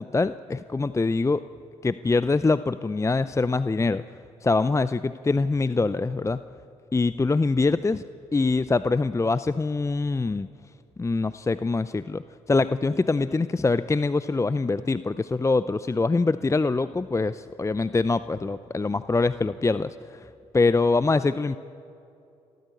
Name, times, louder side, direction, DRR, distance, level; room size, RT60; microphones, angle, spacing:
voice 1, 0.0-1.4 1.8-4.0 4.4-6.4 6.9-8.0 8.3-10.5 11.0-12.2 12.5-20.3 20.5-21.6, left 3 dB, 20° left, 15 dB, 0.6 m, -24 dB
28.5 x 13.5 x 8.4 m, 2.7 s
hypercardioid pair, 50°, 15 cm